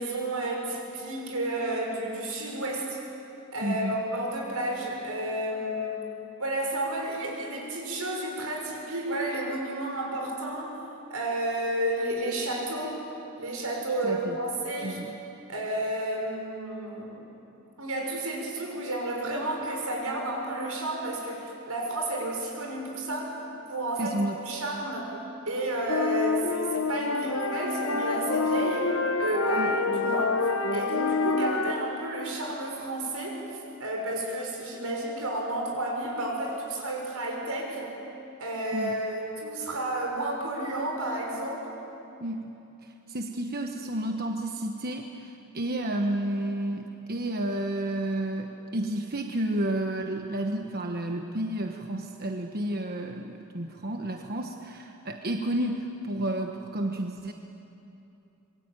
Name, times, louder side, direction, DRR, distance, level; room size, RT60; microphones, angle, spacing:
voice 1, 0.0-3.0 3.5-6.0 6.4-10.7 11.1-13.0 13.4-15.0 15.5-17.3 17.8-23.3 23.7-25.1 25.4-28.9 29.2-30.4 30.7-33.4 33.8-37.9 38.4-41.8, right 1 dB, 90° right, 0 dB, 6.4 m, -31 dB
voice 2, 3.6-4.0 14.0-14.4 14.8-15.1 24.0-24.4 29.6-29.7 38.7-38.9 42.2-42.4 42.8-57.3, right 1 dB, 45° right, 3 dB, 1.2 m, -31 dB
sound 1, 25.9-31.7, left 3 dB, 75° left, 1.3 m, -27 dB
26.5 x 22.5 x 9.1 m, 2.9 s
head